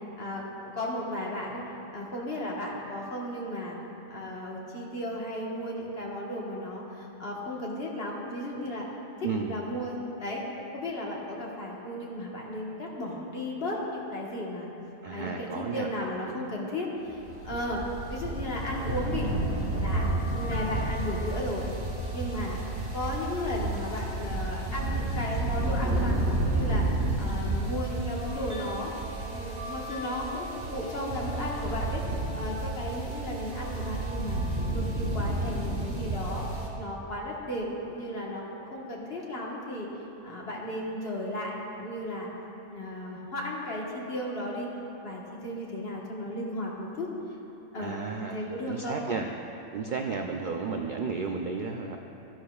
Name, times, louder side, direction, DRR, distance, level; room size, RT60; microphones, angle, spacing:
voice 1, 0.2-1.6 1.9-3.8 4.1-8.9 9.2-10.4 10.7-14.7 15.1-17.2 17.4-19.3 19.8-21.7 22.1-22.6 22.9-28.9 29.3-32.0 32.4-34.4 34.7-36.5 36.8-38.4 38.7-39.9 40.2-42.3 42.7-44.7 45.0-47.1 47.7-49.0, left 1 dB, 50° left, -3 dB, 1.6 m, -35 dB
voice 2, 15.0-15.9 47.8-49.3 49.7-52.0, right 5 dB, 65° right, 3 dB, 0.4 m, -33 dB
sound 1, 17.1-36.7, right 2 dB, 45° right, 1.6 m, -31 dB
13.0 x 12.0 x 2.3 m, 3.0 s
omnidirectional pair, 1.4 m